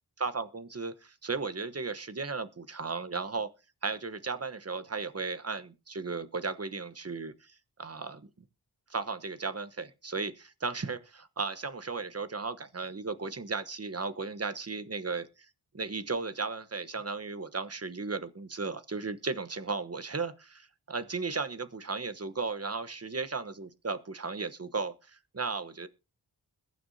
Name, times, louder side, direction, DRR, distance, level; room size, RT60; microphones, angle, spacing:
voice 1, 0.2-3.5 3.8-8.3 8.9-15.3 15.7-25.9, right 4 dB, 40° right, 12 dB, 1.1 m, -35 dB
21.5 x 9.4 x 2.8 m, 0.31 s
wide cardioid pair, 60°, 39 cm